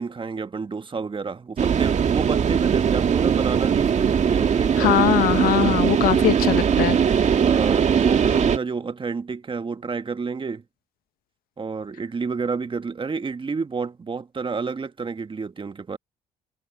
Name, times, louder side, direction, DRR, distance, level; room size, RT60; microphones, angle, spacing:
voice 1, 0.0-4.9 7.3-10.6 11.6-16.0, right 4 dB, 30° right, 1.6 m, -29 dB
sound 1, 1.6-8.6, right 7 dB, 50° right, 1.8 m, -20 dB
voice 2, 4.8-7.0, left 14 dB, 70° left, 0.8 m, -21 dB
supercardioid pair, 60°, 16 cm